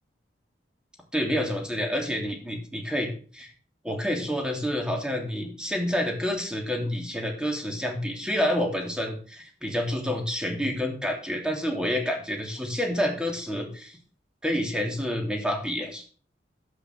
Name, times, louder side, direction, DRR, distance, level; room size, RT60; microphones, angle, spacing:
voice 1, 1.1-3.5 3.8-14.0 14.4-16.1, equal, 5° right, 2 dB, 3.0 m, -28 dB
13.5 x 5.9 x 7.9 m, 0.41 s
head